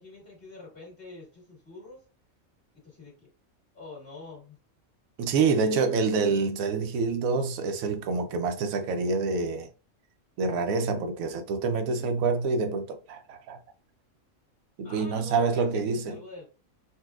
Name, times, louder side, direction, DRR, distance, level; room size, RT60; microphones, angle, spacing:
voice 1, 0.0-2.0 2.8-3.3 3.7-4.6 14.8-16.4, left 3 dB, 40° left, 1.9 m, -46 dB
voice 2, 5.2-9.7 10.4-13.6 14.8-16.2, right 4 dB, 80° right, 1.0 m, -27 dB
4.1 x 2.1 x 2.4 m
omnidirectional pair, 1.5 m